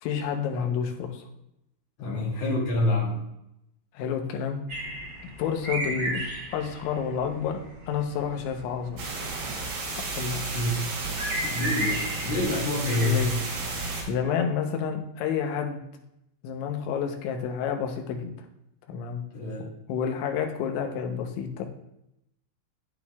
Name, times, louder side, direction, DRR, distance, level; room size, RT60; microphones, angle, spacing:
voice 1, 0.0-1.2 2.0-2.3 3.9-4.6 5.2-6.2 6.5-7.6 7.9-9.0 9.9-10.4 12.9-13.3 13.7-15.8 16.4-18.3 18.9-19.2 19.9-21.6, left 7 dB, 85° left, 4 dB, 3.2 m, -29 dB
voice 2, 2.0-3.3 10.5-10.7 11.4-13.2 19.3-19.7, left 2 dB, 45° left, -4 dB, 2.8 m, -27 dB
sound 1, 4.7-13.9, right 1 dB, 25° right, 2.4 m, -36 dB
sound 2, 9.0-14.0, right 3 dB, 65° right, 3.9 m, -33 dB
9.1 x 8.8 x 2.4 m, 0.82 s
omnidirectional pair, 5.3 m